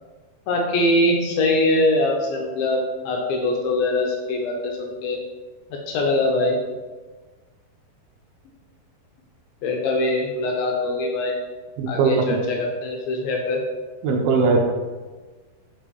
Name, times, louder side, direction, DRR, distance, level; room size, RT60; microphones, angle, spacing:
voice 1, 0.5-5.2 5.9-6.6 9.6-11.3 11.9-13.6, left 2 dB, 80° left, 0 dB, 2.3 m, -22 dB
voice 2, 11.8-12.1 14.0-14.6, right 4 dB, 80° right, 2 dB, 2.4 m, -19 dB
6.4 x 5.1 x 3.0 m, 1.3 s
omnidirectional pair, 4.6 m